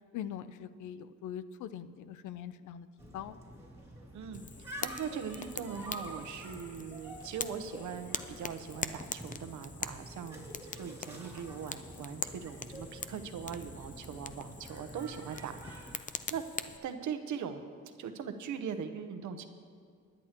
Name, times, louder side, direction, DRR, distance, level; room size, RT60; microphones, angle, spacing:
voice 1, 0.1-2.9 3.1-3.4, left 9 dB, 75° left, 14 dB, 0.6 m, -42 dB
sound 1, 3.0-15.9, right 1 dB, 10° right, 2.7 m, -48 dB
voice 2, 4.1-16.4 16.8-17.7 18.0-19.5, right 7 dB, 75° right, 8 dB, 1.0 m, -41 dB
Fire, 4.3-16.8, left 6 dB, 25° left, 0.5 m, -43 dB
20.0 x 10.5 x 3.0 m, 2.2 s
cardioid pair, 90°, 30 cm